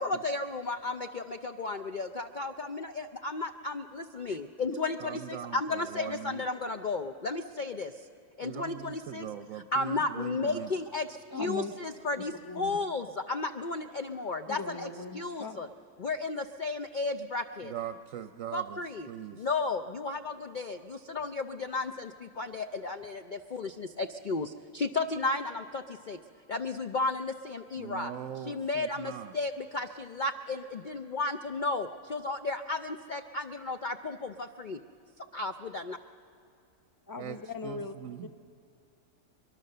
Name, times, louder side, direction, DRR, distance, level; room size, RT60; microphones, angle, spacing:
voice 1, 0.0-7.9 8.4-9.3 9.7-15.7 16.0-17.7 18.5-26.2 26.5-28.1 28.5-34.8 35.3-36.0, left 3 dB, 80° left, 7 dB, 0.4 m, -34 dB
voice 2, 5.0-6.5 8.4-10.7 17.6-18.8 19.1-19.5 27.8-29.3 37.2-37.4 37.6-38.3, right 10 dB, 65° right, 10 dB, 0.9 m, -41 dB
voice 3, 11.3-11.7 12.4-12.8 14.5-15.6 37.1-37.9 38.2-38.4, left 3 dB, 20° left, 8 dB, 0.5 m, -39 dB
23.0 x 22.5 x 6.7 m, 2.6 s
omnidirectional pair, 1.7 m